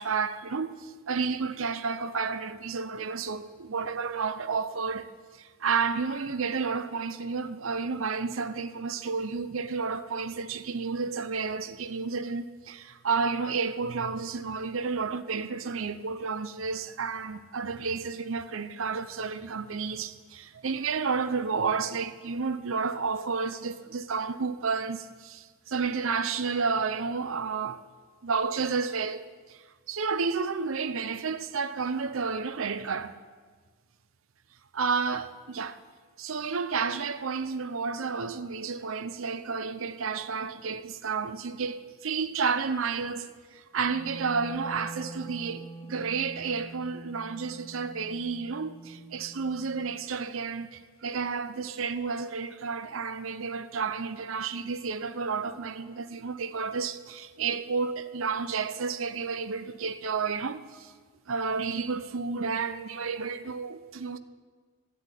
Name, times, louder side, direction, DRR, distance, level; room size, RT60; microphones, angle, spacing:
voice 1, 0.0-5.1 5.4-27.8 28.2-29.2 29.5-29.6 29.9-33.2 34.7-35.8 36.2-60.9 61.3-64.2, right 5 dB, 70° right, 0.7 m, -31 dB
Wind instrument woodwind instrument, 43.8-50.0, right 3 dB, 15° left, 0.8 m, -44 dB
14.0 x 7.8 x 9.9 m
head